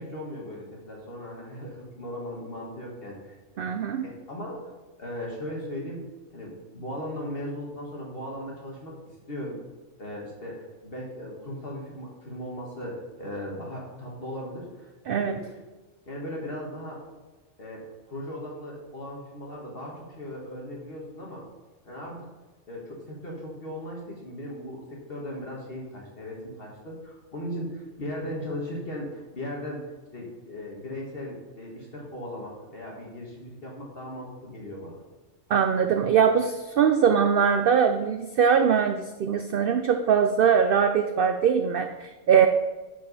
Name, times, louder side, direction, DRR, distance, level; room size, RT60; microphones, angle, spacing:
voice 1, 0.0-3.7 4.0-4.7 5.0-6.0 6.3-9.6 10.0-15.4 16.1-17.0 17.6-21.4 21.8-22.3 22.7-35.0, left 1 dB, 50° left, -3 dB, 1.8 m, -37 dB
voice 2, 3.6-4.1 15.1-15.3 35.5-42.5, right 7 dB, 65° right, 7 dB, 0.6 m, -22 dB
11.0 x 4.8 x 4.1 m, 1.2 s
omnidirectional pair, 1.3 m